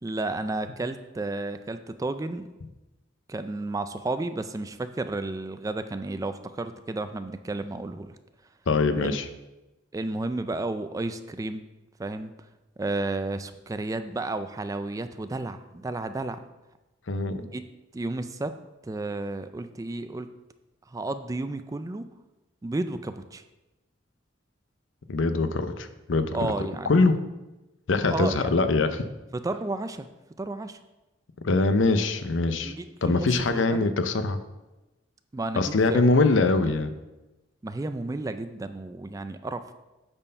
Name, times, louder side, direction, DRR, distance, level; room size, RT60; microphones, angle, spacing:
voice 1, 0.0-2.5 3.3-8.2 9.0-9.2 9.9-11.6 12.0-12.3 12.8-16.4 17.4-17.6 17.9-18.5 18.8-20.3 20.9-22.1 22.6-23.4 26.3-27.1 28.1-28.5 29.3-30.1 30.4-30.8 32.6-33.9 35.3-36.0 36.6-36.8 37.6-39.7, right 2 dB, 15° right, 10 dB, 0.3 m, -32 dB
voice 2, 8.7-9.2 17.1-17.4 25.1-27.2 27.9-29.0 31.4-32.7 33.0-34.4 35.6-36.9, left 3 dB, 70° left, 10 dB, 0.6 m, -23 dB
8.8 x 4.4 x 5.4 m, 1.0 s
head